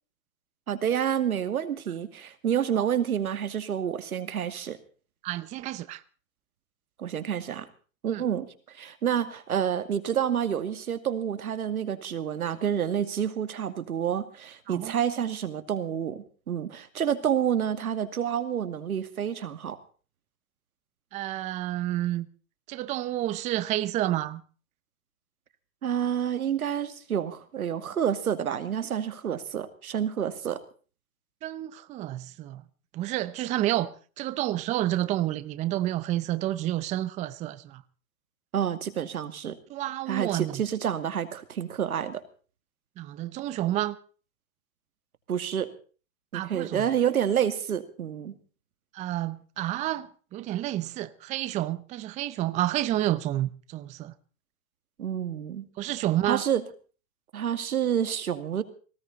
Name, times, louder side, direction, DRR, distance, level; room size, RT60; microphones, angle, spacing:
voice 1, 0.7-4.8 7.0-7.7 8.0-8.5 8.8-19.8 25.8-30.6 38.5-39.6 40.1-42.2 45.3-45.7 46.3-48.3 55.0-55.7 56.3-56.6 57.3-58.6, right 9 dB, 90° right, 2.4 m, -28 dB
voice 2, 5.2-6.0 8.1-8.2 14.7-14.9 21.1-22.3 22.7-24.4 31.4-32.6 32.9-33.9 34.2-37.8 39.7-40.6 43.0-44.0 46.3-46.9 48.9-54.1 55.8-56.4, right 14 dB, 15° right, 0.7 m, -29 dB
19.0 x 18.0 x 4.1 m
hypercardioid pair, 145°, 42 cm